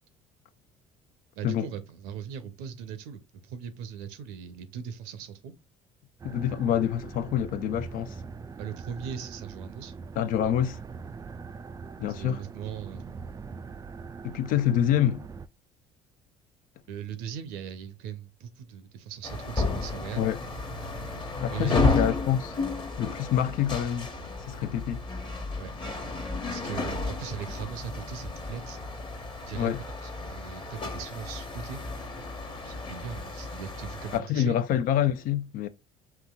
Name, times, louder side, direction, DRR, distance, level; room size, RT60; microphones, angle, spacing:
voice 1, 1.4-5.5 8.6-9.9 12.1-13.4 16.9-20.3 21.4-22.0 25.5-25.7 26.5-28.8 29.5-31.8 32.6-34.6, right 8 dB, 70° right, 0.7 m, -39 dB
voice 2, 6.2-8.2 10.2-10.8 12.0-12.4 14.2-15.2 20.2-20.4 21.4-22.5 23.0-24.1 24.5-25.0 29.5-29.8 34.1-35.7, left 10 dB, 55° left, 0.5 m, -26 dB
sound 1, 6.2-15.5, right 5 dB, 20° right, 0.3 m, -42 dB
sound 2, 19.2-34.2, left 3 dB, 30° left, 1.2 m, -33 dB
5.8 x 2.9 x 2.3 m
hypercardioid pair, 60°, 17 cm